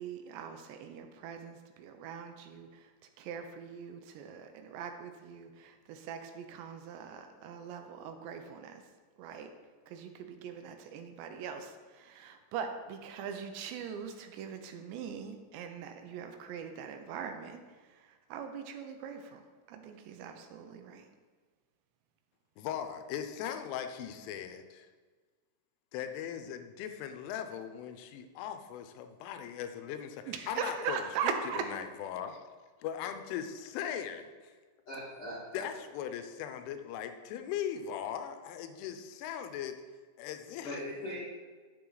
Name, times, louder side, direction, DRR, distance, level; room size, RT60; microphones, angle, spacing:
voice 1, 0.0-2.9 3.2-8.8 9.2-9.5 9.9-19.4 19.7-21.1 30.3-31.7, right 7 dB, 80° right, 6 dB, 2.7 m, -41 dB
voice 2, 22.6-24.9 25.9-31.0 31.2-31.3 31.7-32.4 32.8-34.3 35.5-39.8 40.2-40.8, left 9 dB, 90° left, 8 dB, 3.2 m, -39 dB
voice 3, 34.8-35.6 40.6-41.2, left 1 dB, 65° left, -9 dB, 1.4 m, -40 dB
10.5 x 7.1 x 3.9 m, 1.4 s
omnidirectional pair, 5.5 m